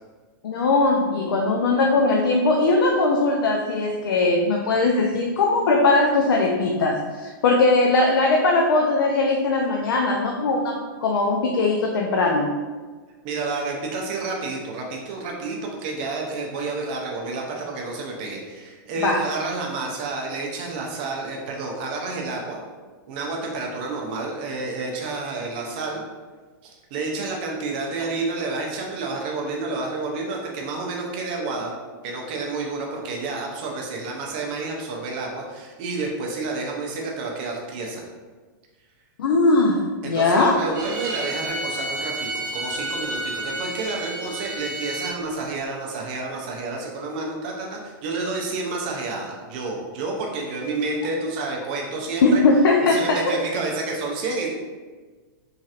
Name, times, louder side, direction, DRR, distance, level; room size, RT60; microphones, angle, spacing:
voice 1, 0.4-12.5 19.0-19.2 39.2-40.6 52.2-53.4, left 3 dB, 85° left, 0 dB, 0.4 m, -20 dB
voice 2, 13.2-22.6 23.1-26.0 26.6-31.7 32.0-38.0 40.0-52.4 52.8-54.5, right 3 dB, 25° right, 0 dB, 0.4 m, -30 dB
Bowed string instrument, 40.7-45.2, right 2 dB, 65° right, 0.7 m, -31 dB
3.1 x 2.8 x 2.4 m, 1.4 s
supercardioid pair, 180°, 12 cm